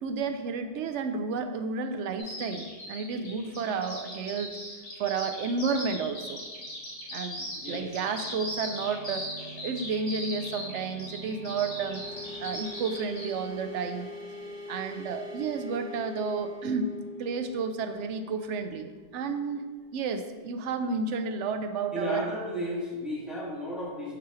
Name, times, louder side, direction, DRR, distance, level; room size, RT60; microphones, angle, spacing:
voice 1, 0.0-4.5 5.0-6.4 7.1-9.3 9.6-12.0 12.4-14.1 14.7-16.9 17.2-19.7 19.9-22.3, right 5 dB, 75° right, 8 dB, 0.9 m, -31 dB
Bird vocalization bird call bird song, 2.2-13.3, left 1 dB, 75° left, 2.0 m, -39 dB
sound 1, 7.4-19.9, left 1 dB, 25° left, 0.7 m, -44 dB
voice 2, 21.9-24.1, equal, ahead, -6 dB, 1.4 m, -34 dB
5.9 x 3.1 x 5.6 m, 1.4 s
omnidirectional pair, 1.2 m